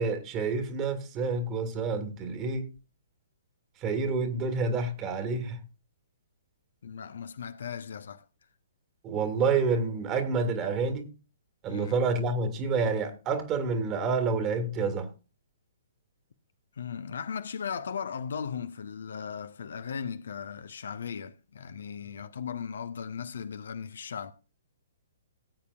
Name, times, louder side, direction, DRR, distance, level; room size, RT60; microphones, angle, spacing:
voice 1, 0.0-2.7 3.8-5.6 9.0-11.1 11.6-15.1, right 4 dB, 25° right, 1.8 m, -28 dB
voice 2, 6.8-8.2 11.7-12.0 16.7-24.3, left 7 dB, 60° left, 0.7 m, -37 dB
18.0 x 8.4 x 2.4 m
figure-of-eight pair, 125°, 0 cm